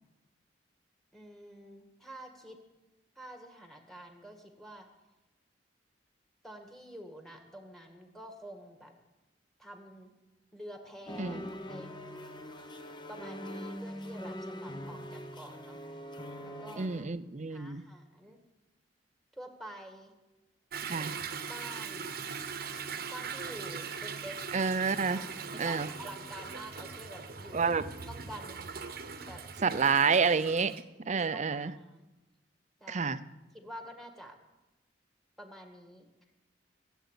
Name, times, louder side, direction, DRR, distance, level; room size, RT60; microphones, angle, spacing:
voice 1, 1.1-2.6 3.2-4.9 6.4-8.9 9.6-10.1 10.5-11.4 11.7-11.9 13.1-15.8 16.4-17.0 17.5-18.4 19.3-20.1 20.9-22.1 23.1-24.4 25.0-27.7 28.1-28.7 29.2-29.8 31.1-32.0 32.8-33.1 33.5-34.4 35.4-36.1, equal, ahead, 4 dB, 1.8 m, -48 dB
sound 1, 11.1-17.0, equal, 25° left, 0.9 m, -42 dB
voice 2, 16.8-17.8 20.8-21.2 24.5-25.2 25.6-25.9 27.5-27.8 29.6-30.7 31.1-31.7 32.9-33.2, right 5 dB, 40° right, 13 dB, 0.6 m, -28 dB
Toilet flush / Drip / Trickle dribble, 20.7-30.8, right 5 dB, 55° right, 1.0 m, -41 dB
16.5 x 8.1 x 8.3 m, 1.0 s
head